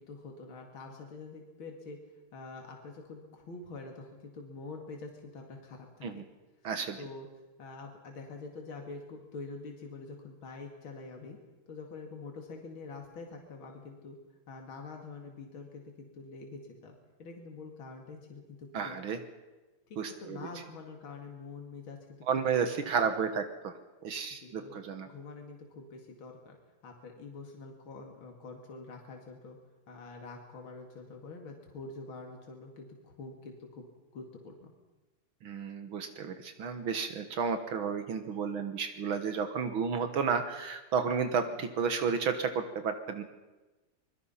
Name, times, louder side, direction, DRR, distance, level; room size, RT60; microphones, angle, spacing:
voice 1, 0.0-2.0 2.3-6.1 7.0-7.3 7.6-11.4 11.7-14.2 14.5-19.0 20.2-22.2 22.6-22.7 24.3-24.8 25.0-26.6 26.8-29.6 29.9-33.8 34.1-34.7, left 3 dB, 70° left, 2 dB, 3.1 m, -46 dB
voice 2, 6.6-7.0 18.7-19.2 20.0-20.4 22.3-23.7 24.0-25.1 35.4-43.2, right 6 dB, 75° right, 8 dB, 2.2 m, -32 dB
25.5 x 22.0 x 5.8 m, 1.1 s
omnidirectional pair, 2.3 m